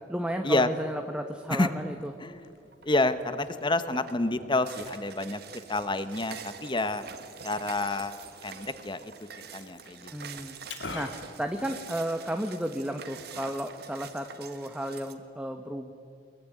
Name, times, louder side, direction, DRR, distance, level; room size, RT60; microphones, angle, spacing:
voice 1, 0.1-2.1 10.1-10.6 10.9-15.9, right 1 dB, 5° right, 5 dB, 1.1 m, -33 dB
Liquid, 1.3-12.3, left 3 dB, 85° left, 2.5 m, -49 dB
sound 1, 2.7-3.1 3.5-15.1, right 7 dB, 60° right, 1.8 m, -46 dB
voice 2, 2.8-5.4 5.7-7.0 7.4-8.2 8.4-9.1 9.5-10.1, left 2 dB, 25° left, 12 dB, 1.2 m, -28 dB
23.5 x 22.0 x 9.2 m, 2.6 s
head